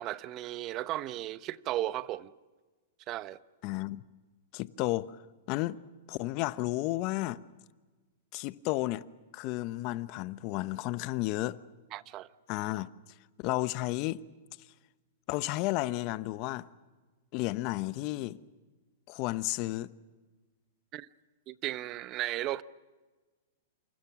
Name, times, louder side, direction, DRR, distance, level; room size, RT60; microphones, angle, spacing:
voice 1, 0.0-2.3 3.1-3.4 11.9-12.3 20.9-21.1 21.5-22.6, right 14 dB, 35° right, 0.9 m, -35 dB
voice 2, 3.6-4.0 4.5-5.2 5.5-5.8 6.1-7.4 8.3-9.0 9.3-11.6 12.5-12.9 13.4-14.2 15.3-16.7 17.3-18.4 19.1-19.9, left 18 dB, 45° left, 1.0 m, -32 dB
28.5 x 27.5 x 6.1 m
hypercardioid pair, 120°, 0 cm